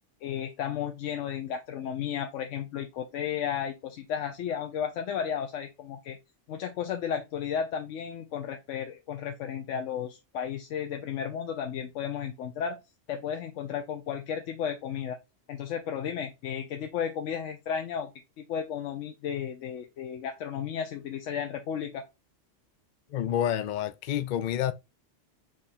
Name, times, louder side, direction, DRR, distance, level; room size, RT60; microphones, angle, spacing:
voice 1, 0.2-6.2 6.5-12.8 13.1-15.2 15.5-18.1 18.4-22.0, left 8 dB, 90° left, 0.9 m, -33 dB
voice 2, 23.1-24.7, left 10 dB, 65° left, 0.5 m, -28 dB
3.7 x 3.2 x 4.2 m
omnidirectional pair, 1.2 m